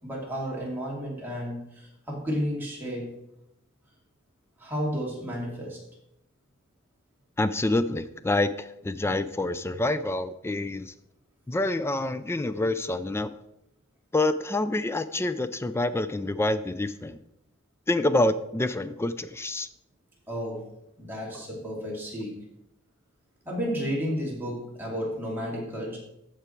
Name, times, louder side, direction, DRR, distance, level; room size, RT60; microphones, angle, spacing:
voice 1, 0.0-3.1 4.6-5.8 20.3-20.7 21.0-22.5 23.5-26.0, equal, 10° right, -4 dB, 2.5 m, -32 dB
voice 2, 7.4-10.9 11.5-13.3 14.1-17.2 17.9-19.7 21.3-21.4, left 2 dB, 10° left, 13 dB, 0.3 m, -27 dB
14.0 x 4.8 x 4.4 m, 0.83 s
head